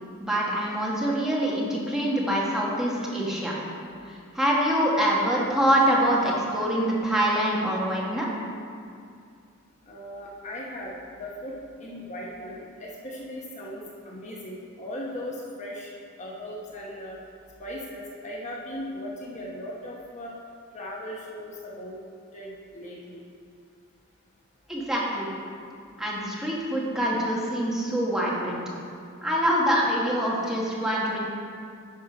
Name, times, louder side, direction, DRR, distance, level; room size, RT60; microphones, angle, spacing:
voice 1, 0.2-3.5 4.3-8.3 24.7-25.3 26.0-28.6 29.2-31.2, equal, ahead, -5 dB, 1.3 m, -25 dB
voice 2, 9.9-11.5 11.8-15.9 16.2-17.2 17.6-20.3 20.7-22.0 22.3-23.2, left 1 dB, 35° left, -3 dB, 1.0 m, -38 dB
10.5 x 5.0 x 4.9 m, 2.3 s
head